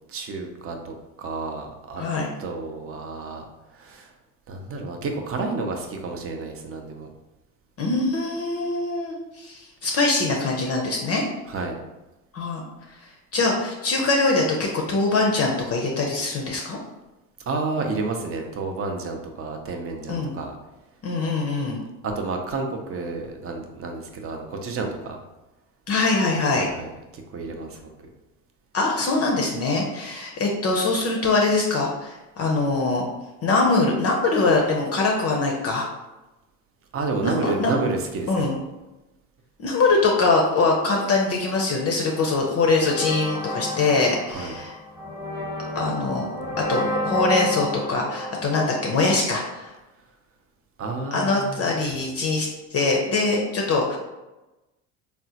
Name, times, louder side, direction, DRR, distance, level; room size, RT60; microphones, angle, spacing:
voice 1, 0.1-2.0 2.4-3.5 3.7-4.1 4.5-7.1 11.5-11.8 17.5-20.5 22.0-25.2 26.5-26.9 27.3-27.9 36.9-38.4 44.3-44.5 50.8-51.6, right 3 dB, 30° right, 3 dB, 0.6 m, -30 dB
voice 2, 2.0-2.3 7.8-11.2 12.3-12.6 13.3-16.8 20.1-20.3 21.0-21.8 25.9-26.7 28.7-33.1 33.4-35.9 37.2-37.7 38.3-38.5 39.6-44.7 45.7-46.3 46.7-49.7 51.1-54.0, left 3 dB, 35° left, 0 dB, 0.6 m, -23 dB
sound 1, 42.7-49.5, left 1 dB, 5° right, 0.8 m, -31 dB
3.6 x 2.1 x 2.8 m, 1.0 s
hypercardioid pair, 75°, 45 cm